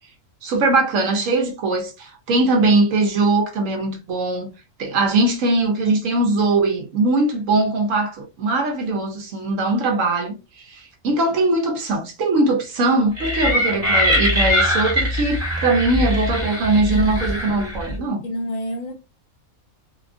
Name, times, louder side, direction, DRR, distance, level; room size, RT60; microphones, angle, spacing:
voice 1, 0.4-4.5 4.8-18.2, right 2 dB, 70° right, 1.0 m, -21 dB
sound 1, 13.2-18.0, left 1 dB, 10° right, 1.1 m, -22 dB
voice 2, 16.8-17.7 18.2-18.9, left 1 dB, 65° left, 1.0 m, -30 dB
2.8 x 2.3 x 2.4 m
omnidirectional pair, 1.5 m